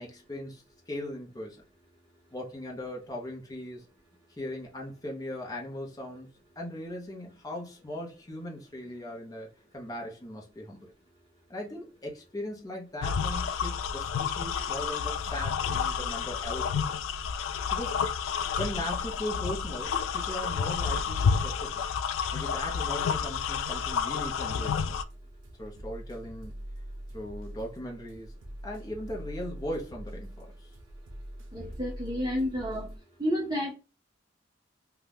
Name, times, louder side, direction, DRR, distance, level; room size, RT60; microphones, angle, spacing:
voice 1, 0.0-1.6 2.3-3.9 4.4-6.3 6.6-9.5 9.7-10.9 11.5-14.1 14.4-16.8 17.7-18.1 18.6-21.8 22.3-25.0 25.6-26.5 27.1-28.3 28.6-30.7, left 1 dB, 20° left, 0.6 m, -39 dB
sound 1, 13.0-25.0, left 6 dB, 90° left, 0.3 m, -30 dB
sound 2, 24.7-33.0, right 1 dB, 80° right, 0.6 m, -43 dB
voice 2, 31.5-32.9 33.2-33.7, equal, 20° right, 0.7 m, -30 dB
2.6 x 2.3 x 3.4 m
head